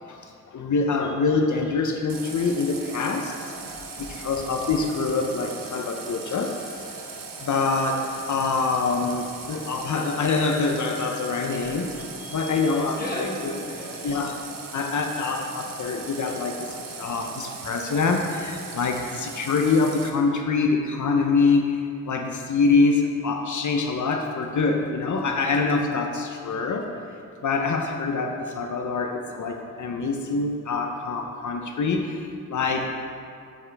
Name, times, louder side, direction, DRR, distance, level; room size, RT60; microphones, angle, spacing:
voice 1, 0.5-3.3 4.1-6.8 7.4-13.3 14.0-14.4 14.7-16.5 17.0-26.9 27.4-32.9, left 4 dB, 65° left, 3 dB, 0.6 m, -25 dB
Water tap faucet, 2.1-20.1, right 4 dB, 90° right, 0.9 m, -39 dB
voice 2, 3.7-4.1 8.4-8.7 9.5-9.9 12.9-14.4, equal, 30° left, -6 dB, 1.7 m, -38 dB
8.6 x 7.2 x 3.3 m, 2.4 s
wide cardioid pair, 140°, 32 cm